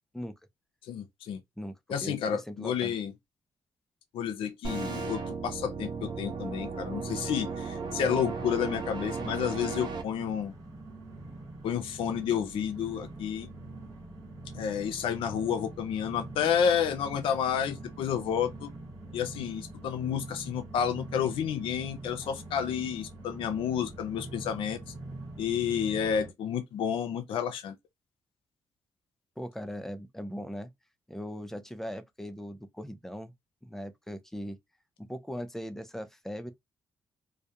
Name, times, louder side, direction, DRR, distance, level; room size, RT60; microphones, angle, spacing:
voice 1, 0.9-1.4 1.9-3.1 4.1-10.5 11.6-13.5 14.5-18.7 19.1-24.8 25.4-27.8, left 8 dB, 85° left, 0.5 m, -30 dB
voice 2, 2.0-3.0 29.4-30.7 31.1-33.3 33.6-34.6 35.0-36.5, equal, 5° left, 0.4 m, -39 dB
sound 1, 4.6-10.0, right 4 dB, 60° right, 0.6 m, -35 dB
sound 2, 7.6-26.3, right 2 dB, 40° right, 1.0 m, -44 dB
2.3 x 2.1 x 2.8 m
cardioid pair, 95°, 9 cm